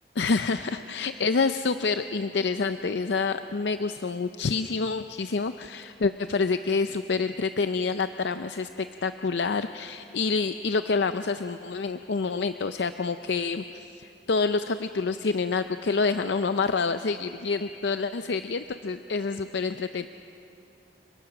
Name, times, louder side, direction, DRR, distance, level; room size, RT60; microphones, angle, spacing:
voice 1, 0.2-8.7 9.0-20.1, left 4 dB, 75° left, 10 dB, 0.5 m, -27 dB
29.5 x 22.0 x 6.0 m, 2.8 s
head